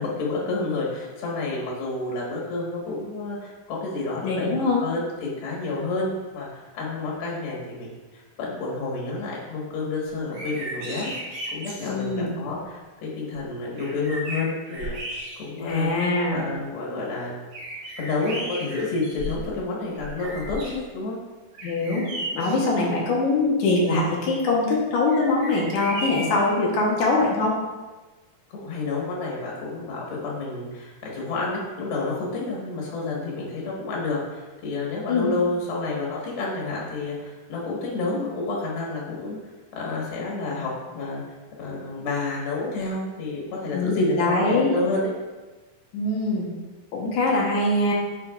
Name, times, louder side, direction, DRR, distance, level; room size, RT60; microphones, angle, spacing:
voice 1, 0.0-4.5 4.8-11.1 11.5-15.9 16.3-17.4 18.0-21.2 28.5-39.4 39.8-41.2 41.6-45.1, left 3 dB, 85° left, -4 dB, 3.4 m, -29 dB
voice 2, 4.2-4.8 11.9-12.3 15.6-16.4 21.6-22.1 22.3-27.6 35.1-35.3 43.7-44.7 45.9-46.5 46.9-47.9, left 2 dB, 65° left, -4 dB, 2.2 m, -23 dB
sound 1, 10.2-12.0 13.3-13.4 13.8-15.7 16.2-16.3 17.5-19.6 19.9-20.8 21.5-22.7 25.1-26.5, right 1 dB, 70° right, 3.4 m, -35 dB
9.8 x 4.4 x 2.4 m, 1.2 s
omnidirectional pair, 4.3 m